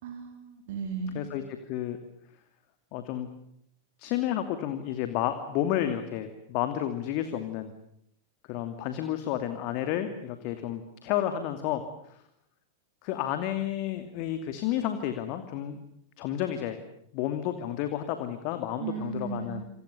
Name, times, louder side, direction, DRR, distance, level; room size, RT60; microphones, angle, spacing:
voice 1, 0.0-1.2 18.8-19.7, right 5 dB, 55° right, 5 dB, 3.9 m, -35 dB
voice 2, 1.1-2.0 2.9-3.3 4.0-7.7 8.5-12.2 13.0-15.8 16.2-16.8 17.1-19.6, left 11 dB, 45° left, 8 dB, 2.5 m, -31 dB
28.5 x 27.5 x 6.9 m, 0.71 s
figure-of-eight pair, 90°, 0 cm